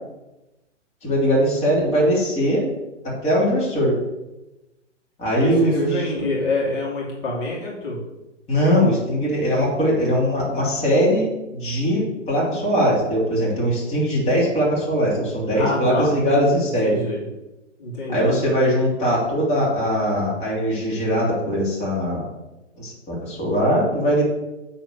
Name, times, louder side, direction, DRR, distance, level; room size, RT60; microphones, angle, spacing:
voice 1, 1.0-2.6 3.0-4.0 5.2-6.3 8.5-12.0 12.3-17.0 18.1-22.3 22.8-24.2, equal, 15° left, -5 dB, 3.1 m, -21 dB
voice 2, 5.4-8.0 15.5-16.1 16.6-17.2 17.8-18.3, left 2 dB, 45° left, -4 dB, 2.8 m, -26 dB
9.0 x 4.2 x 6.6 m, 0.99 s
figure-of-eight pair, 120°, 37 cm